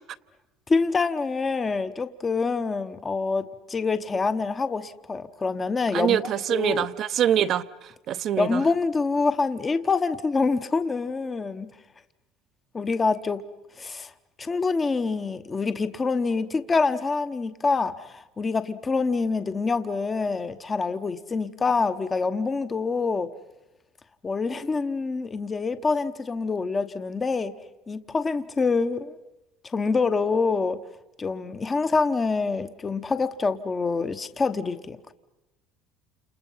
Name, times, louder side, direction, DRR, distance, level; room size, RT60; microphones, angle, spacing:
voice 1, 0.7-6.9 8.4-11.7 12.7-13.4 13.8-14.1 14.4-23.3 24.2-27.5 27.9-29.2 29.6-30.8 31.2-35.1, left 4 dB, 20° left, 1.0 m, -26 dB
voice 2, 5.9-8.6, right 10 dB, 45° right, 0.9 m, -25 dB
30.0 x 28.5 x 5.7 m
cardioid pair, 140°, 0 cm